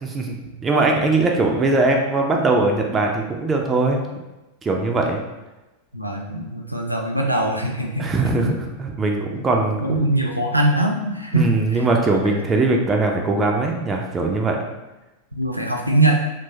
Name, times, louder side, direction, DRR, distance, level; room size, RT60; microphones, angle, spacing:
voice 1, 0.0-4.2 4.6-5.2 8.0-10.2 11.3-14.6, right 3 dB, 20° right, 1 dB, 0.3 m, -21 dB
voice 2, 5.9-8.6 9.4-9.5 9.8-12.2 14.5-14.6 15.3-16.3, right 2 dB, 90° left, 1 dB, 0.4 m, -22 dB
2.9 x 2.2 x 2.7 m, 1.0 s
figure-of-eight pair, 90°, 0 cm